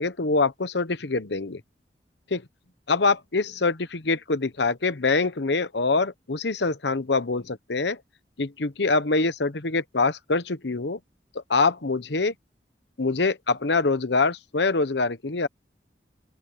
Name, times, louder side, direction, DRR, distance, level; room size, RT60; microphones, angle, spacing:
voice 1, 0.0-1.6 2.3-2.4 2.9-8.0 8.4-11.0 11.3-12.3 13.0-15.5, left 3 dB, 75° left, 1.0 m, -24 dB
open air
head